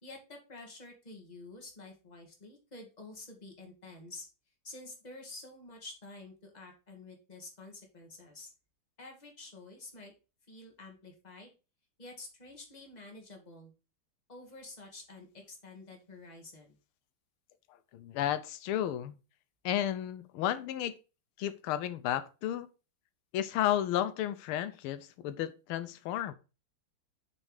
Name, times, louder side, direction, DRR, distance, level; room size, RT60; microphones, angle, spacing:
voice 1, 0.0-4.3 4.6-8.5 9.0-10.1 10.5-11.5 12.0-13.7 14.3-16.8, left 2 dB, 20° left, 1.9 m, -49 dB
voice 2, 17.9-19.2 19.6-21.0 21.4-22.7 23.3-26.3, left 11 dB, 85° left, 1.5 m, -32 dB
6.3 x 4.4 x 4.8 m
omnidirectional pair, 2.3 m